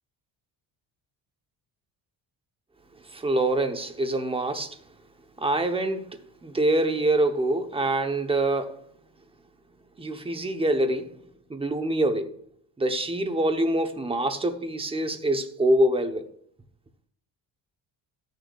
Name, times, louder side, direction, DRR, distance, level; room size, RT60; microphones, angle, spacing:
voice 1, 3.1-4.8 5.4-8.8 10.0-11.1 11.5-12.4 12.8-16.3, right 1 dB, 15° right, 0.8 m, -25 dB
14.5 x 6.5 x 2.4 m
cardioid pair, 125°, 43 cm